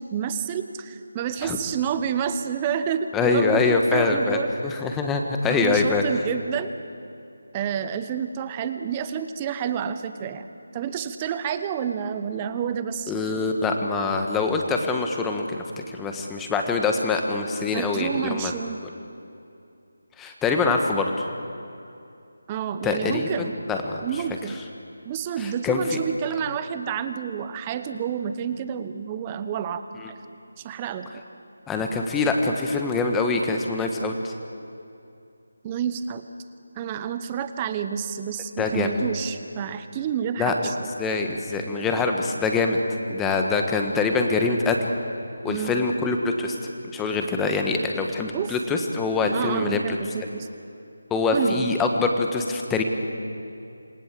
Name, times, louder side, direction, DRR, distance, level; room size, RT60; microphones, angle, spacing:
voice 1, 0.0-4.6 5.5-6.7 7.5-10.5 10.7-13.1 17.7-18.8 22.5-23.5 24.0-24.6 25.0-30.2 30.6-31.2 35.6-36.2 36.8-40.9 45.4-45.7 48.3-48.5 49.3-50.5 51.3-51.7, right 8 dB, 20° right, 10 dB, 0.9 m, -29 dB
voice 2, 3.1-6.0 13.1-18.5 20.2-21.3 22.8-24.0 25.4-26.0 30.0-30.1 31.7-34.3 38.6-38.9 40.4-40.5 41.0-42.8 43.1-44.8 45.4-46.5 46.9-50.0 51.1-52.8, left 4 dB, 5° left, 3 dB, 1.3 m, -24 dB
27.0 x 19.0 x 7.6 m, 2.7 s
figure-of-eight pair, 165°, 0 cm